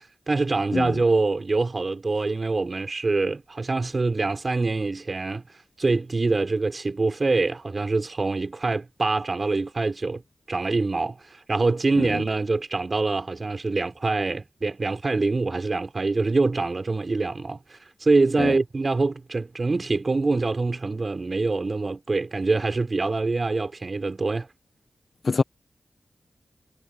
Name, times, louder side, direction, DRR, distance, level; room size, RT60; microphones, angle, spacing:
voice 1, 0.0-5.4 5.8-10.2 10.5-24.5, right 3 dB, 45° right, 4.8 m, -25 dB
voice 2, 0.7-0.9 12.0-12.1 18.4-18.5 25.2-25.4, left 4 dB, 60° left, 1.0 m, -23 dB
cardioid pair, 55°, 0 cm